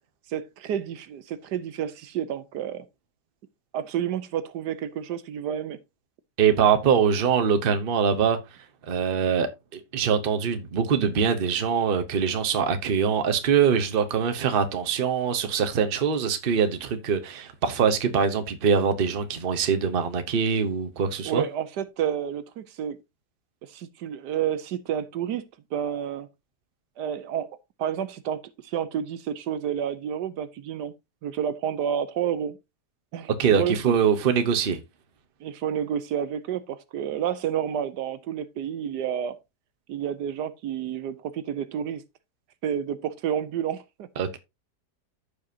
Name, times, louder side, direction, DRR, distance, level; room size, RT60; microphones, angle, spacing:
voice 1, 0.3-2.9 3.7-5.8 21.2-23.0 23.7-25.5 25.7-26.3 27.0-27.5 27.8-28.4 28.6-30.9 31.2-32.6 33.1-33.9 35.4-39.4 39.9-42.0 42.6-44.1, right 9 dB, 80° right, 1.3 m, -30 dB
voice 2, 6.4-8.4 8.9-21.4 33.4-34.8 44.2-44.4, right 7 dB, 40° right, 0.9 m, -23 dB
14.5 x 5.1 x 2.7 m
omnidirectional pair, 1.8 m